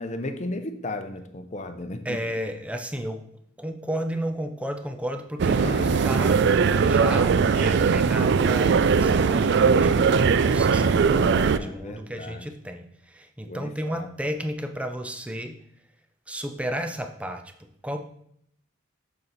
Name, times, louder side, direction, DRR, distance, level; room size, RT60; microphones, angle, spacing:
voice 1, 0.0-2.2 5.6-6.0 10.9-12.5 13.5-14.1, left 2 dB, 35° left, 8 dB, 0.7 m, -35 dB
voice 2, 2.0-3.2 3.6-6.4 6.8-15.6 16.3-17.5 17.8-18.0, equal, 5° right, 6 dB, 0.6 m, -33 dB
sound 1, 5.4-11.6, right 5 dB, 55° right, 0.4 m, -20 dB
6.9 x 6.7 x 4.1 m, 0.71 s
head